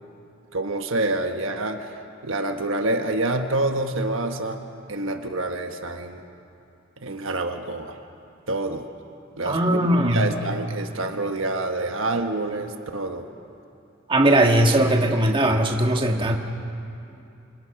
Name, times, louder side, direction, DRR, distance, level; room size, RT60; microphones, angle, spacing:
voice 1, 0.5-1.9 2.2-4.6 4.9-6.2 7.0-8.0 8.5-8.9 9.4-13.3, right 2 dB, 70° right, 5 dB, 1.3 m, -27 dB
voice 2, 9.4-10.3 14.1-16.4, right 1 dB, 25° right, 2 dB, 1.6 m, -19 dB
27.5 x 25.0 x 5.9 m, 2.7 s
head